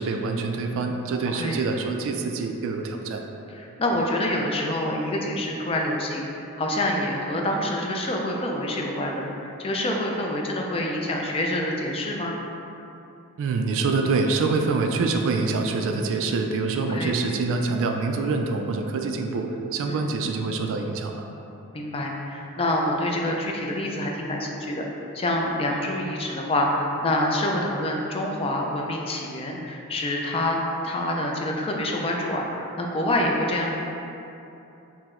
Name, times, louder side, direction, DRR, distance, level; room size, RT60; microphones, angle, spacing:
voice 1, 0.0-3.2 13.4-21.3, right 4 dB, 60° right, 4 dB, 0.3 m, -25 dB
voice 2, 3.5-12.4 16.9-17.1 19.9-20.0 21.7-24.8 25.1-33.8, left 1 dB, 25° left, 0 dB, 0.3 m, -26 dB
4.6 x 2.0 x 3.6 m, 2.9 s
head